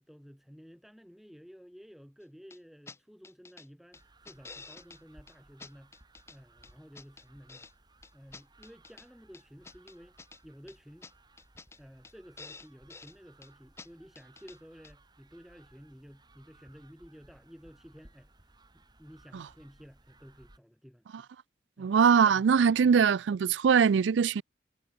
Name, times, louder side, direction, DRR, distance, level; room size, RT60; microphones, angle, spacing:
voice 1, 0.0-5.9 6.3-7.7 8.1-10.1 10.4-11.1 11.8-18.3 18.7-21.3 21.8-21.9 22.8-22.9, equal, ahead, 3.1 m, -53 dB
sound 1, 2.5-2.6 2.9-3.0 3.2-3.7 3.9-5.0 5.3-5.4 5.6-6.4 6.6-7.7 8.0-9.1 9.3-10.4 10.7-10.8 11.0-11.1 11.4-11.8 12.0-12.1 12.4-13.2 13.4-13.5 13.8-13.9 14.2-14.6 14.8-14.9, left 4 dB, 15° left, 0.6 m, -49 dB
sound 2, 3.9-20.6, right 2 dB, 25° right, 3.5 m, -61 dB
voice 2, 21.8-24.4, right 6 dB, 90° right, 0.4 m, -22 dB
head